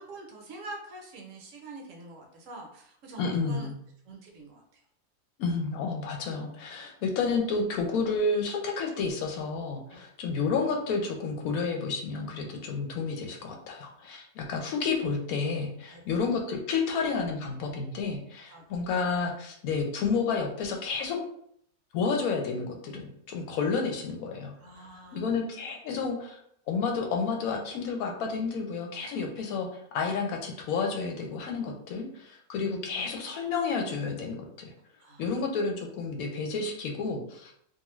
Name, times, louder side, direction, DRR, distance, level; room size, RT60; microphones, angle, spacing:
voice 1, 0.0-3.7 4.0-4.8 9.9-10.0 15.9-16.0 18.5-18.6 24.6-25.4 35.0-35.3, right 2 dB, 70° right, 1 dB, 0.9 m, -45 dB
voice 2, 3.2-3.7 5.4-21.2 21.9-24.5 25.1-26.4 26.7-34.7 35.2-37.5, left 4 dB, 80° left, 2 dB, 1.0 m, -30 dB
2.5 x 2.4 x 3.0 m, 0.68 s
omnidirectional pair, 1.5 m